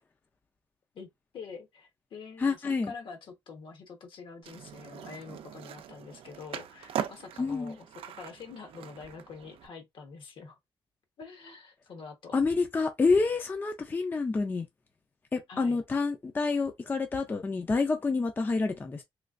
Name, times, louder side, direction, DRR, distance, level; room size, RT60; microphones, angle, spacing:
voice 1, 1.3-10.6 11.2-12.4 15.5-15.8, left 5 dB, 65° left, 1.1 m, -46 dB
voice 2, 2.4-2.9 7.4-7.8 12.3-14.7 15.3-19.0, left 4 dB, 20° left, 0.4 m, -28 dB
Skateboard, 4.4-9.7, right 10 dB, 85° right, 0.4 m, -41 dB
3.2 x 3.1 x 2.5 m
cardioid pair, 150°, 9 cm